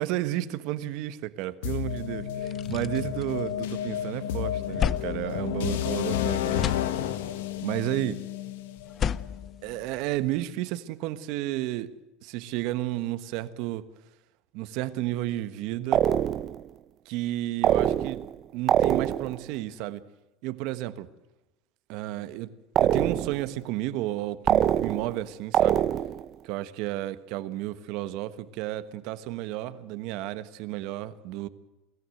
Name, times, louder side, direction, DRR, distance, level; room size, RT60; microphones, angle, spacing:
voice 1, 0.0-6.7 7.6-8.2 9.6-11.9 12.2-13.8 14.5-16.0 17.0-18.2 18.5-20.0 20.4-21.1 21.9-22.5 22.8-25.8 26.4-31.5, right 15 dB, 65° right, 13 dB, 1.3 m, -32 dB
sound 1, 1.6-9.5, left 11 dB, 85° left, 1.4 m, -31 dB
sound 2, 1.8-1.9 2.2-3.9 4.3-6.1 6.4-7.5 8.7-10.4, left 8 dB, 35° left, 0.6 m, -33 dB
sound 3, 15.9-16.6 17.6-18.4 18.7-19.4 22.8-23.5 24.5-25.2 25.5-26.3, right 10 dB, 40° right, 0.8 m, -24 dB
24.0 x 14.0 x 7.9 m, 1.0 s
supercardioid pair, 115°, 0 cm